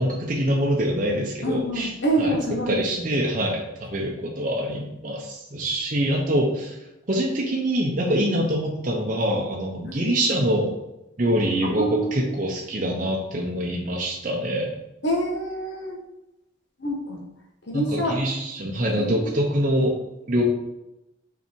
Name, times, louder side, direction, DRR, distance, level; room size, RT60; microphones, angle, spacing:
voice 1, 0.0-1.9 2.2-2.4 2.7-6.7 7.1-10.7 11.2-14.7 17.7-19.9 20.3-20.4, equal, 40° right, -2 dB, 0.8 m, -24 dB
voice 2, 1.4-3.3 9.9-10.1 11.6-12.3 15.0-16.0 16.8-17.2 17.6-18.2 19.0-19.3, right 1 dB, 60° left, 0 dB, 1.4 m, -27 dB
5.6 x 4.0 x 4.6 m, 0.92 s
head